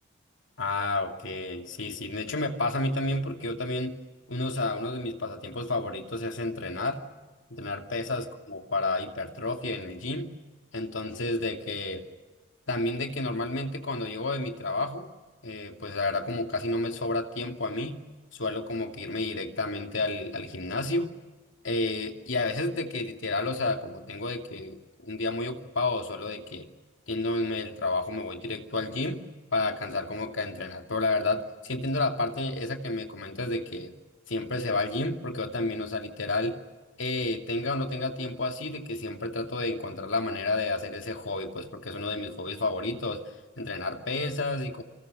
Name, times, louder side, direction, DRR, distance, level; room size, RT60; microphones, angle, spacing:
voice 1, 0.6-4.0 4.3-7.0 7.5-10.3 10.7-12.0 12.7-15.1 15.4-18.0 18.3-21.1 21.6-26.7 27.1-29.2 29.5-33.9 34.3-36.6 37.0-43.2 43.6-44.8, left 2 dB, 75° left, 4 dB, 2.7 m, -31 dB
29.5 x 26.0 x 6.5 m, 1.3 s
head